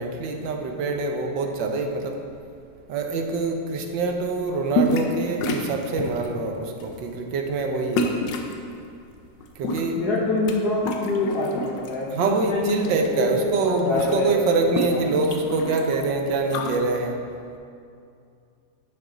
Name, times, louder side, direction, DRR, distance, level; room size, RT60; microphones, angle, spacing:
voice 1, 0.0-2.2 2.9-8.2 9.6-10.0 12.1-17.2, right 3 dB, 85° right, 4 dB, 1.5 m, -25 dB
sound 1, 4.7-5.2 5.4-6.3 6.8-7.0 8.0-8.5 9.4-10.6 10.8-11.9 12.4-13.1 13.4-13.5 13.7-16.8, left 2 dB, 85° left, 1.4 m, -28 dB
voice 2, 9.9-14.4 14.8-15.1, left 2 dB, 65° left, -4 dB, 1.4 m, -26 dB
10.5 x 5.8 x 3.8 m, 2.4 s
omnidirectional pair, 1.9 m